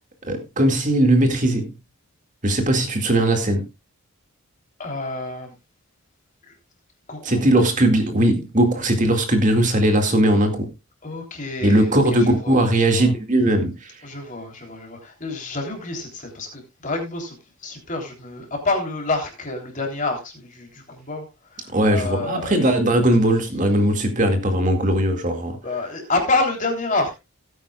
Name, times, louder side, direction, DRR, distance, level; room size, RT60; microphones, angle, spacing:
voice 1, 0.2-1.7 2.4-3.7 7.2-10.7 11.6-14.1 21.7-25.6, right 1 dB, 35° right, 2.2 m, -19 dB
voice 2, 4.8-5.5 7.1-7.4 11.0-12.0 12.4-12.7 13.0-13.1 14.0-17.3 17.6-21.2 21.5-22.6 25.6-27.1, left 3 dB, 35° left, 3.4 m, -28 dB
17.5 x 9.2 x 2.4 m
head